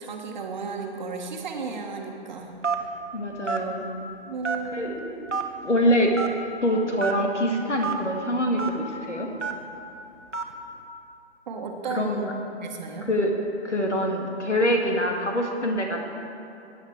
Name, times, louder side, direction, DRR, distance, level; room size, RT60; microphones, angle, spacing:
voice 1, 0.0-2.6 4.3-5.0 11.5-13.1, right 4 dB, 40° right, 3 dB, 1.4 m, -34 dB
Telephone, 2.6-2.9 3.5-3.6 4.4-4.8 5.3-5.4 6.1-6.3 7.0-7.1 7.8-7.9 8.6-8.7 9.4-9.6 10.3-10.5, right 5 dB, 90° right, 1.3 m, -27 dB
voice 2, 3.1-3.9 4.7-6.1 6.6-9.3 11.9-12.3 13.0-16.0, equal, 80° left, 2 dB, 2.1 m, -25 dB
16.0 x 9.5 x 4.6 m, 2.8 s
figure-of-eight pair, 130°, 35 cm